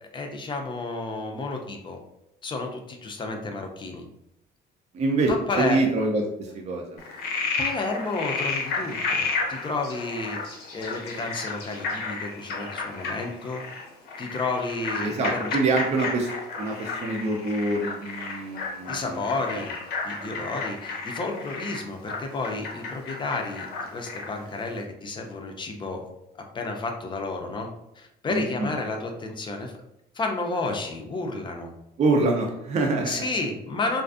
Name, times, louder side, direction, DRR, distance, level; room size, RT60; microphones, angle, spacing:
voice 1, 0.1-2.0 2.4-4.1 5.5-5.8 7.6-13.6 14.2-15.6 18.9-19.7 20.0-26.0 26.5-27.7 28.0-29.7 30.1-31.7 33.0-34.0, left 3 dB, 30° left, 3 dB, 0.5 m, -31 dB
voice 2, 4.9-5.3 5.6-7.0 15.0-16.3 16.6-19.2 20.2-20.3 28.3-28.7 32.0-33.3, right 3 dB, 40° right, 0 dB, 0.5 m, -25 dB
Frog, 7.0-24.4, left 4 dB, 70° left, 0.6 m, -32 dB
2.4 x 2.4 x 2.4 m, 0.85 s
cardioid pair, 110°, 17 cm